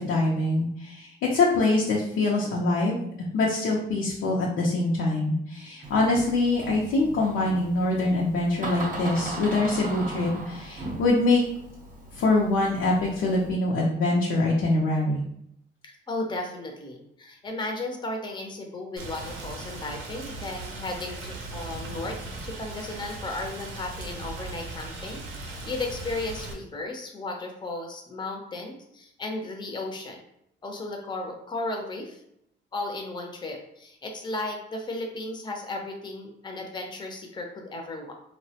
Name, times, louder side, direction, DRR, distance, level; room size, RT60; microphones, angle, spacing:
voice 1, 0.0-3.0 3.3-11.4 12.1-15.2, left 2 dB, 85° left, -3 dB, 0.5 m, -24 dB
Door, 5.8-13.5, right 2 dB, 40° right, 0.6 m, -38 dB
voice 2, 15.8-22.2 22.4-30.2 30.6-32.2 32.7-38.1, left 2 dB, 25° left, 2 dB, 0.5 m, -35 dB
Rain, 19.0-26.5, right 2 dB, 90° right, 0.6 m, -38 dB
3.1 x 2.1 x 2.7 m, 0.75 s
cardioid pair, 90°, 20 cm